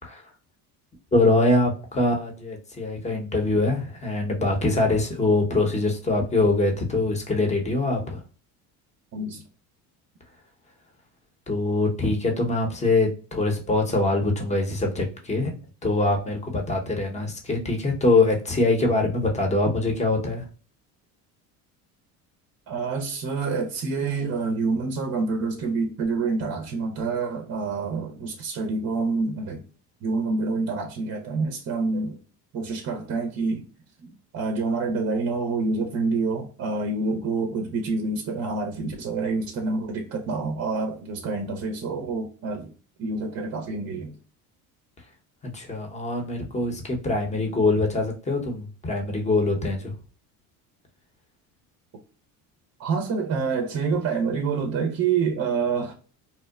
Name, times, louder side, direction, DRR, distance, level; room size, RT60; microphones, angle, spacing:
voice 1, 1.1-8.2 11.5-15.5 15.8-20.5 45.4-49.9, left 2 dB, 15° left, 0.7 m, -23 dB
voice 2, 9.1-9.4 22.7-29.6 30.0-32.2 32.5-33.6 34.0-42.7 43.0-44.2 52.8-55.9, right 4 dB, 35° right, 0.6 m, -27 dB
2.8 x 2.1 x 2.2 m
supercardioid pair, 85°, 43 cm